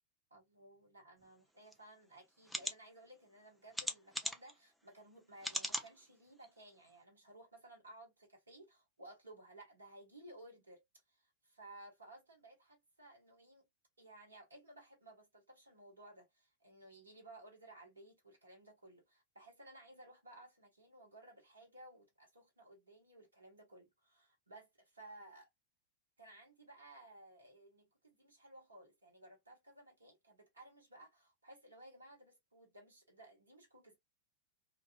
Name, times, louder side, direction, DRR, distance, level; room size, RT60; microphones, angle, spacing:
voice 1, 0.3-10.8 11.1-13.7 14.0-24.7 24.9-25.5 26.2-34.0, right 1 dB, 75° right, 1.0 m, -58 dB
sound 1, 1.7-1.8 2.4-2.7 3.7-4.5 5.4-5.9 6.4-6.5 6.9-7.0, equal, ahead, 0.5 m, -39 dB
2.4 x 2.2 x 2.3 m
figure-of-eight pair, 90°, 0 cm